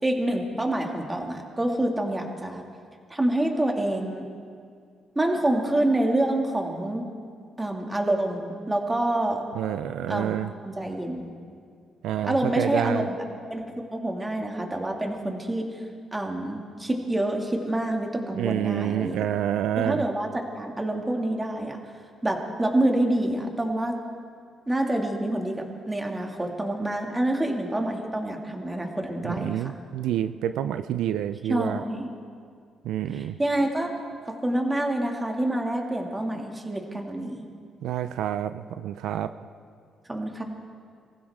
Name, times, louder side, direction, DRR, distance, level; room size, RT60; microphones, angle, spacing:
voice 1, 0.0-2.6 3.1-4.2 5.2-7.1 7.6-9.4 10.1-10.4 10.6-11.3 12.2-13.2 13.5-15.7 16.1-19.2 19.8-21.8 22.2-24.0 24.7-29.7 31.5-32.1 33.1-34.0 34.3-37.4 40.1-40.4, right 1 dB, 15° right, 2 dB, 2.3 m, -27 dB
voice 2, 9.6-10.5 12.0-13.1 18.4-20.0 29.2-31.8 32.8-33.3 37.8-39.3, right 11 dB, 85° right, 11 dB, 0.4 m, -28 dB
24.5 x 15.5 x 3.6 m, 2.2 s
cardioid pair, 90°, 0 cm